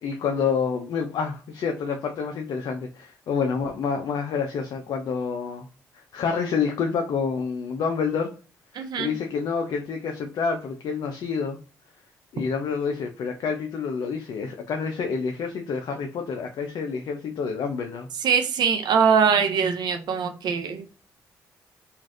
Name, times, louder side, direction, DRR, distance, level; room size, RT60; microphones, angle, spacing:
voice 1, 0.0-5.7 6.1-8.3 8.7-11.6 12.3-18.1, left 5 dB, 65° left, 4 dB, 0.5 m, -28 dB
voice 2, 8.7-9.1 18.2-20.9, right 6 dB, 65° right, 6 dB, 0.5 m, -22 dB
3.2 x 2.5 x 2.5 m, 0.37 s
hypercardioid pair, 45°, 8 cm